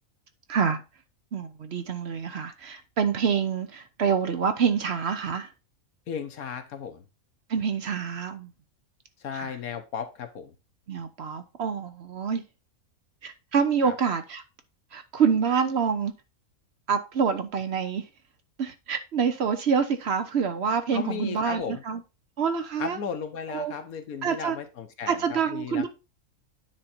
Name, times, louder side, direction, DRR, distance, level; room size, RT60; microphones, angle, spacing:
voice 1, 0.5-0.8 1.3-5.5 7.5-8.5 9.3-9.6 10.9-12.4 13.2-14.4 14.9-16.1 16.9-18.1 18.6-22.0 22.4-23.0 23.5-23.7 24.2-24.6 25.1-25.9, right 6 dB, 55° right, 0.9 m, -26 dB
voice 2, 6.1-7.1 9.2-10.5 13.8-13.9 20.9-21.8 22.8-25.9, left 7 dB, 80° left, 1.5 m, -35 dB
9.6 x 3.9 x 4.3 m
omnidirectional pair, 1.5 m